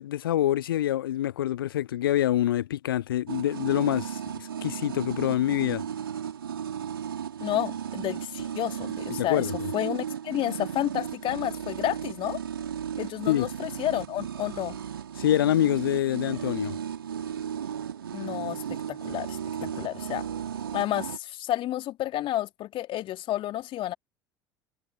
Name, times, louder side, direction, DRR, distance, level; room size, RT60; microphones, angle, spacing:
voice 1, 0.0-5.8 9.2-9.7 13.3-13.5 15.2-16.7 19.8-19.9, left 12 dB, 70° left, 0.8 m, -26 dB
sound 1, 3.3-21.2, right 8 dB, 75° right, 3.6 m, -35 dB
voice 2, 7.4-12.4 13.0-14.8 18.1-20.2 20.7-23.9, left 14 dB, 45° left, 2.8 m, -31 dB
figure-of-eight pair, 65°, 12 cm